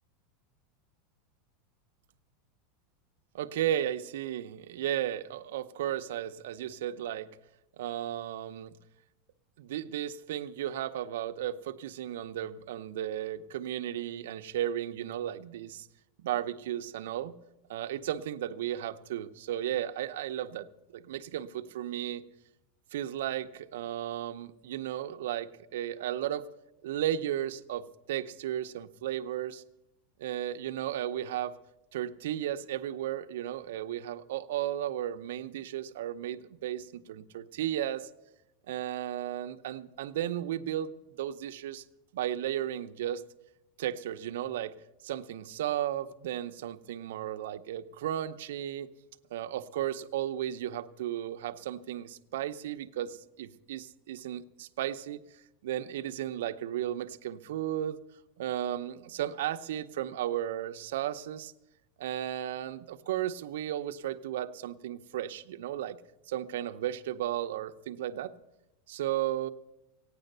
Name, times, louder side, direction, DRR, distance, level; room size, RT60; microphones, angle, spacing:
voice 1, 3.3-7.3 7.8-8.8 9.6-15.9 16.2-17.3 17.7-20.7 20.9-22.2 22.9-26.5 26.8-29.6 30.2-31.6 31.9-38.1 38.7-40.9 41.2-41.8 42.1-43.2 43.8-44.7 45.0-48.9 49.3-55.2 55.6-58.0 58.4-61.5 62.0-66.0 66.3-68.3 68.9-69.5, right 11 dB, 75° right, 9 dB, 0.7 m, -34 dB
16.0 x 9.8 x 6.6 m, 0.90 s
supercardioid pair, 175°, 0 cm